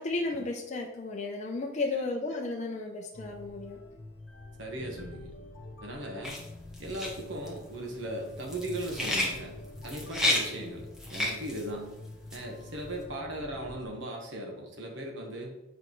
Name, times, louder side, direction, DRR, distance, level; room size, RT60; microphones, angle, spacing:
voice 1, 0.0-3.8, left 3 dB, 35° left, 0 dB, 0.6 m, -33 dB
sound 1, 3.1-13.9, left 2 dB, 60° left, 1.1 m, -47 dB
voice 2, 4.6-5.3 5.8-6.4 6.8-9.5 9.8-11.9 12.3-15.5, right 1 dB, 70° right, 1 dB, 1.3 m, -38 dB
sound 2, 6.2-12.8, left 1 dB, 5° right, 1.1 m, -32 dB
8.0 x 5.1 x 3.1 m, 0.93 s
head